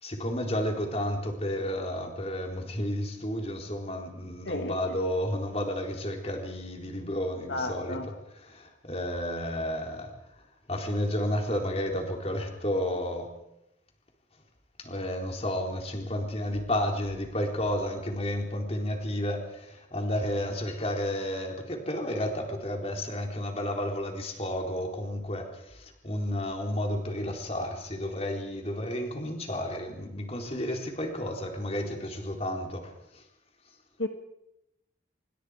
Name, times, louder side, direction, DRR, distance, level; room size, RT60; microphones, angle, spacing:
voice 1, 0.0-8.0 8.4-10.1 10.7-13.4 14.8-33.2, left 1 dB, 35° left, 2 dB, 4.0 m, -32 dB
voice 2, 4.5-5.0 7.5-8.1 34.0-34.1, left 2 dB, 75° left, 5 dB, 2.1 m, -33 dB
27.0 x 24.0 x 5.1 m, 0.86 s
head